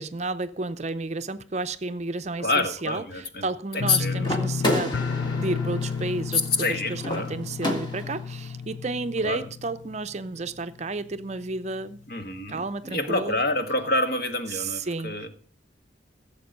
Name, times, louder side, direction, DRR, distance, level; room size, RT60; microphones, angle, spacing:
voice 1, 0.0-12.0 12.5-13.4 14.5-15.2, right 3 dB, 35° right, 0.6 m, -32 dB
voice 2, 2.4-3.4 3.7-4.4 6.3-7.4 9.2-9.4 12.1-15.3, left 2 dB, 50° left, 1.5 m, -27 dB
sound 1, 3.8-10.7 11.0-11.5 11.9-12.0, left 5 dB, 80° left, 0.5 m, -32 dB
sound 2, 4.2-8.3, left 1 dB, 25° left, 1.9 m, -31 dB
16.0 x 7.3 x 5.2 m
head